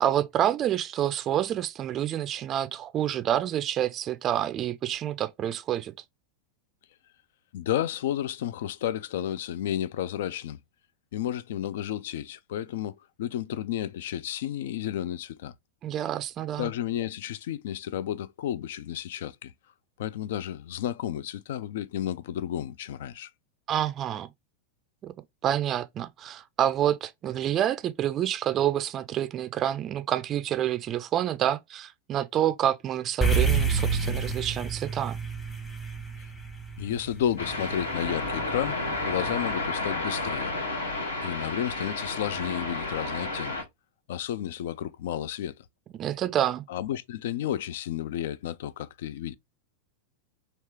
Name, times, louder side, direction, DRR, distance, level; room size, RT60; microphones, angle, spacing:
voice 1, 0.0-5.9 15.8-16.7 23.7-24.3 25.0-25.1 25.4-35.2 45.9-46.6, right 11 dB, 30° right, 0.4 m, -28 dB
voice 2, 7.5-10.6 11.1-15.5 16.6-19.5 20.0-23.3 36.8-40.5 41.2-43.7 44.1-45.7 46.7-49.3, left 11 dB, 55° left, 0.3 m, -32 dB
sound 1, 33.2-37.7, right 4 dB, 15° left, 0.9 m, -27 dB
sound 2, 37.4-43.6, left 2 dB, 75° left, 1.0 m, -31 dB
3.2 x 2.9 x 3.2 m
figure-of-eight pair, 90°, 0 cm